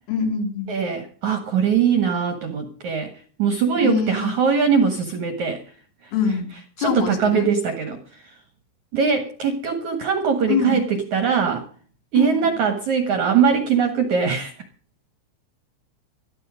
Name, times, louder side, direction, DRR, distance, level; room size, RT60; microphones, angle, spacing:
voice 1, 0.1-0.8 3.8-4.3 6.1-6.5 6.8-7.5 10.5-10.8 12.2-12.5, left 6 dB, 85° left, 5 dB, 5.7 m, -24 dB
voice 2, 0.7-3.1 3.4-5.6 6.8-8.0 8.9-11.6 12.1-14.5, right 6 dB, 60° right, 8 dB, 2.0 m, -21 dB
15.0 x 13.5 x 5.1 m, 0.42 s
omnidirectional pair, 5.6 m